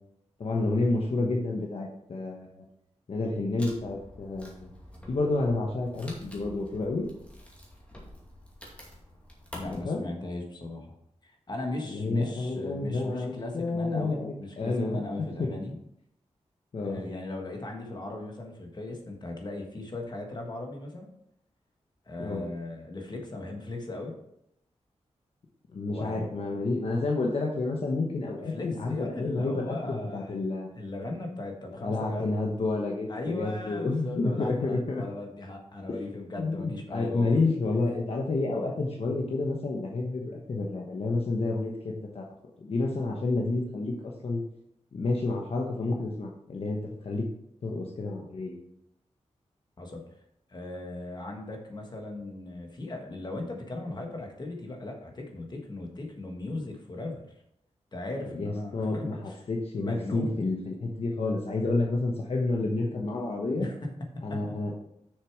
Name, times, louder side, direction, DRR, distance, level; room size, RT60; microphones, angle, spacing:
voice 1, 0.4-2.6 3.1-4.7 5.1-7.1 9.6-10.0 11.9-15.5 16.7-17.0 22.2-22.4 25.7-30.7 31.8-35.0 35.9-36.0 36.4-42.2 42.6-44.4 44.9-46.8 47.0-47.2 47.6-48.5 58.3-63.7 64.2-64.7, left 2 dB, 55° left, -1 dB, 1.1 m, -29 dB
Wood, 3.6-9.8, left 1 dB, 10° left, 2.2 m, -48 dB
voice 2, 9.5-10.9 11.2-15.8 16.8-21.1 22.1-24.1 25.9-26.2 28.5-30.4 30.7-32.3 33.1-37.5 49.8-50.0 50.5-57.2 57.9-59.4 59.8-60.5 63.6-63.9 64.3-64.6, left 2 dB, 35° left, 2 dB, 1.5 m, -38 dB
6.7 x 6.6 x 4.8 m, 0.78 s
wide cardioid pair, 120°, 12 cm